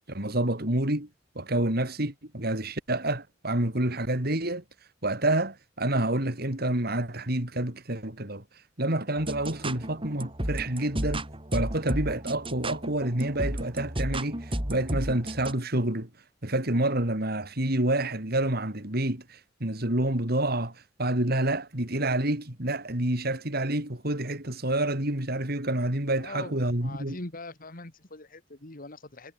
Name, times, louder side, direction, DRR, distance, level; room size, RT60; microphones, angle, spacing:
voice 1, 0.1-1.1 1.4-4.6 5.0-8.4 8.8-11.3 11.5-16.1 16.4-27.2, right 1 dB, 55° right, 4.3 m, -28 dB
sound 1, 9.2-15.5, right 1 dB, 30° right, 4.9 m, -33 dB
voice 2, 26.2-26.5 26.8-29.3, left 2 dB, 50° left, 2.5 m, -42 dB
head